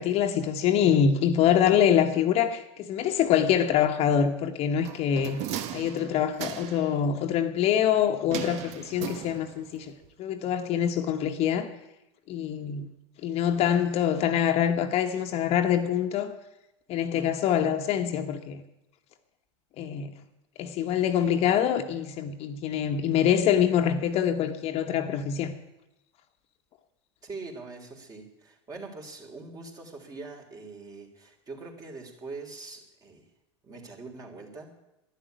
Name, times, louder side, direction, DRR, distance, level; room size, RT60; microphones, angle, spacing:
voice 1, 0.0-5.4 5.7-9.9 10.2-11.7 12.3-12.9 13.2-16.4 16.9-18.6 19.8-20.1 20.6-25.5, left 9 dB, 45° left, 1.3 m, -25 dB
sound 1, 4.8-6.9 8.3-9.7 10.0-10.1, right 11 dB, 50° right, 1.2 m, -37 dB
voice 2, 27.2-33.3 33.6-34.7, right 3 dB, 25° right, 3.5 m, -43 dB
11.5 x 11.5 x 9.4 m
hypercardioid pair, 110°, 15 cm